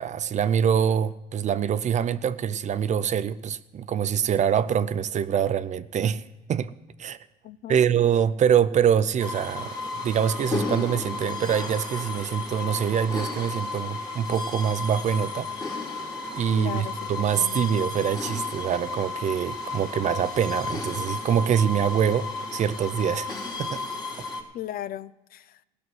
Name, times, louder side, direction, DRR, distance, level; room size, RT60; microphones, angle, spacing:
voice 1, 0.0-6.7 7.0-7.2 7.7-15.5 16.3-23.3 23.6-23.8, right 8 dB, 45° right, 0.6 m, -25 dB
voice 2, 7.4-7.8 16.6-17.6 24.5-25.6, left 12 dB, 60° left, 0.5 m, -37 dB
sound 1, 9.2-24.4, left 3 dB, 20° left, 2.2 m, -33 dB
17.5 x 6.2 x 7.8 m
cardioid pair, 110°, 17 cm